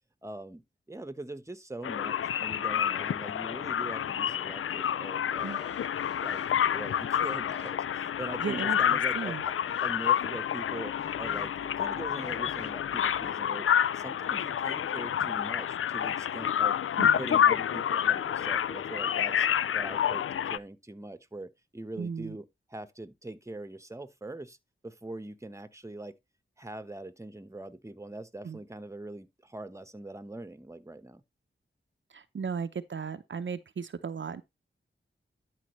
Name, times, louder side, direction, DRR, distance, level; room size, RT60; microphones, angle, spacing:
voice 1, 0.2-0.6 0.9-5.7 6.2-6.4 6.7-9.5 9.8-13.7 13.9-16.8 17.2-19.5 19.7-24.6 24.8-26.2 26.6-31.2, right 2 dB, 15° right, 1.0 m, -42 dB
sound 1, 1.8-20.6, left 9 dB, 85° left, 0.4 m, -29 dB
sound 2, 5.4-13.3, left 3 dB, 55° left, 2.5 m, -50 dB
voice 2, 8.4-9.4 17.0-17.2 22.0-22.4 28.4-28.6 32.1-34.4, right 6 dB, 65° right, 0.7 m, -36 dB
12.0 x 4.9 x 3.1 m
wide cardioid pair, 65°, 21 cm